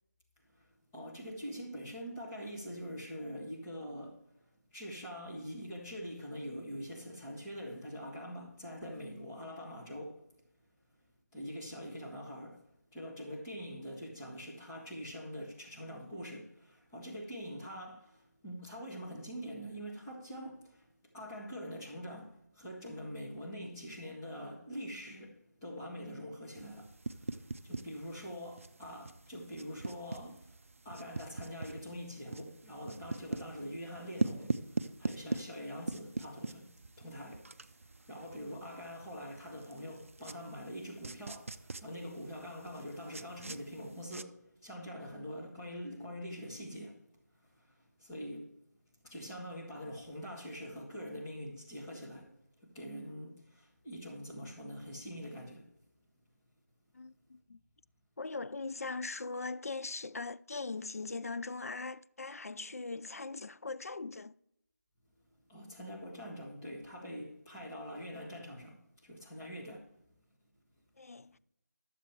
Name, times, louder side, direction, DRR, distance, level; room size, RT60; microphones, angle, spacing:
voice 1, 0.5-4.4 4.7-10.2 11.3-12.7 12.9-30.6 30.8-47.0 47.4-48.5 49.0-52.3 52.6-55.7 65.5-69.9, equal, 10° left, 1.5 m, -44 dB
sound 1, 26.6-44.2, right 3 dB, 50° right, 0.6 m, -42 dB
voice 2, 56.9-57.6 58.2-64.3 71.0-71.4, left 3 dB, 55° left, 0.4 m, -40 dB
12.5 x 7.4 x 4.4 m
figure-of-eight pair, 170°, 10 cm